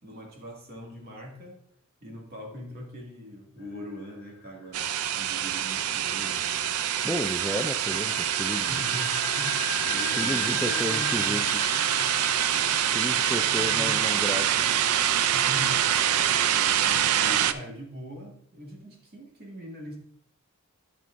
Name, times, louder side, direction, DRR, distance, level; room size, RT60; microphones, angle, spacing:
voice 1, 0.0-1.6 2.0-6.8 8.7-11.5 11.8-12.3 13.4-14.1 15.3-16.2 16.5-20.0, left 1 dB, 45° right, -1 dB, 2.1 m, -42 dB
sound 1, 3.8-14.5, left 5 dB, 45° left, 2.2 m, -38 dB
sound 2, 4.7-17.5, right 10 dB, 80° right, 0.4 m, -25 dB
voice 2, 7.0-8.9 9.8-11.4 12.9-14.7, equal, 5° left, 4 dB, 0.3 m, -33 dB
12.5 x 5.9 x 2.5 m, 0.65 s
head